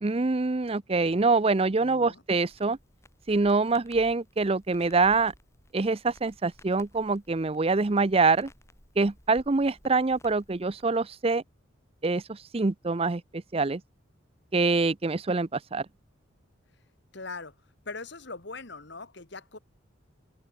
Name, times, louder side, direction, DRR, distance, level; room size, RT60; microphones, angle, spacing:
voice 1, 0.0-2.8 3.3-5.3 5.7-8.5 9.0-11.4 12.0-13.8 14.5-15.9, right 3 dB, 30° right, 0.5 m, -25 dB
voice 2, 1.8-2.2 17.1-17.6 17.9-19.6, left 3 dB, 60° left, 2.1 m, -41 dB
Crackle, 2.4-11.1, left 1 dB, 15° left, 6.9 m, -57 dB
head